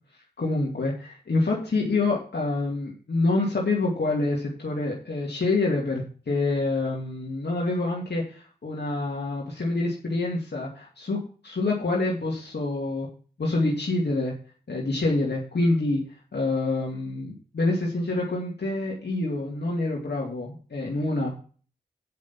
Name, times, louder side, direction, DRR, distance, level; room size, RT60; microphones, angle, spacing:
voice 1, 0.4-11.2 11.4-13.1 13.4-14.3 14.7-16.0 16.3-21.4, left 2 dB, 75° left, -2 dB, 2.5 m, -26 dB
9.4 x 5.4 x 7.1 m, 0.40 s
cardioid pair, 45°, 18 cm